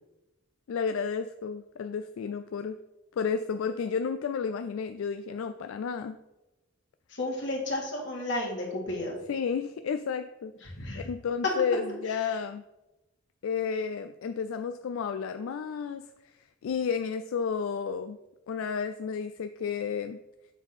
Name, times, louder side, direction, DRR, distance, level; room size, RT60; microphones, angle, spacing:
voice 1, 0.7-2.8 3.2-6.2 9.3-10.5 11.0-12.6 13.4-16.1 16.6-18.2 18.5-20.2, left 6 dB, 80° left, 9 dB, 0.3 m, -32 dB
voice 2, 7.1-9.2 10.8-11.1 12.1-12.3, left 1 dB, 60° left, -2 dB, 1.9 m, -33 dB
7.1 x 3.7 x 5.7 m, 0.98 s
head